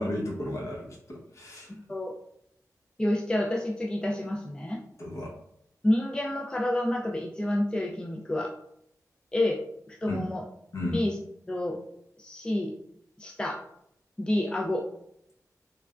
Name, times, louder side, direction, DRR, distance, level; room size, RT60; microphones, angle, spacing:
voice 1, 0.0-1.7 5.0-5.3 10.1-10.2 10.7-11.0, left 1 dB, 55° left, -3 dB, 1.0 m, -33 dB
voice 2, 1.7-2.1 3.0-4.8 5.8-8.5 9.3-9.6 9.9-10.4 10.8-11.2 11.5-11.8 12.2-12.7 13.2-13.6 14.2-14.9, left 1 dB, 15° left, 0 dB, 0.3 m, -29 dB
3.2 x 2.2 x 2.4 m, 0.74 s
wide cardioid pair, 80°, 6 cm